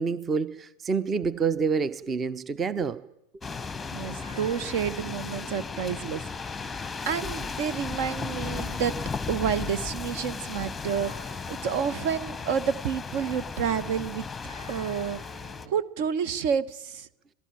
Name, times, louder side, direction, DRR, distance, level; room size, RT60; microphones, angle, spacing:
voice 1, 0.0-3.0, right 5 dB, 20° right, 0.9 m, -27 dB
sound 1, 3.4-15.7, left 5 dB, 10° left, 1.0 m, -35 dB
voice 2, 3.9-6.2 6.5-8.9 9.3-14.3 14.7-17.1, right 7 dB, 45° right, 1.0 m, -30 dB
sound 2, 4.2-9.1 10.9-13.2 14.5-15.9, equal, 80° right, 3.7 m, -52 dB
26.0 x 17.5 x 9.0 m
figure-of-eight pair, 90°, 0 cm